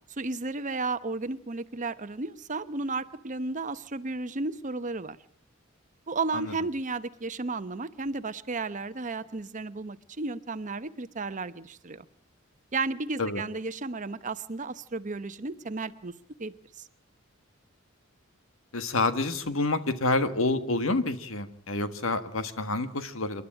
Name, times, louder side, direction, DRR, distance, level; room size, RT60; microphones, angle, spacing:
voice 1, 0.2-5.2 6.1-12.1 12.7-16.1 16.4-16.8, right 3 dB, 40° right, 12 dB, 0.9 m, -33 dB
voice 2, 18.7-23.4, left 2 dB, 85° left, 10 dB, 1.6 m, -28 dB
28.0 x 11.5 x 8.8 m, 0.67 s
head